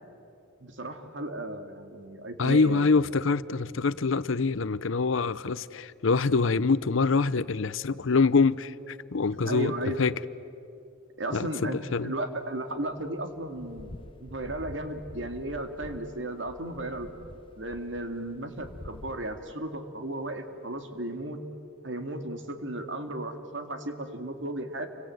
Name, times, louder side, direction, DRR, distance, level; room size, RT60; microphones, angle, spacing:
voice 1, 0.6-2.9 9.4-10.0 11.2-11.8 12.0-13.9 14.2-17.1 17.6-21.4 21.8-24.9, right 1 dB, 60° right, 2.4 m, -35 dB
voice 2, 2.4-9.7 10.0-10.1 11.3-12.1, left 4 dB, 70° left, 0.7 m, -25 dB
sound 1, 12.6-19.9 20.2-20.3 20.8-20.9, left 1 dB, 25° left, 0.7 m, -48 dB
30.0 x 25.0 x 7.8 m
head